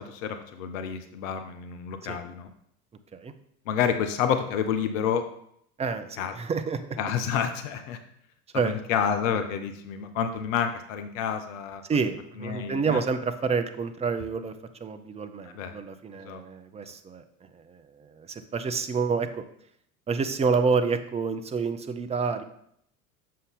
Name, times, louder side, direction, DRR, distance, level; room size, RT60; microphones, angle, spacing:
voice 1, 0.0-2.5 3.7-5.2 6.2-6.3 7.0-8.0 8.5-11.8 12.4-13.0 15.4-15.7 16.2-16.4, left 8 dB, 60° left, 7 dB, 0.9 m, -29 dB
voice 2, 5.8-6.8 8.5-8.7 11.9-14.5 14.8-17.2 17.5-19.4 20.1-22.4, right 5 dB, 15° right, 9 dB, 0.5 m, -28 dB
7.6 x 5.5 x 3.6 m, 0.70 s
figure-of-eight pair, 70°, 45 cm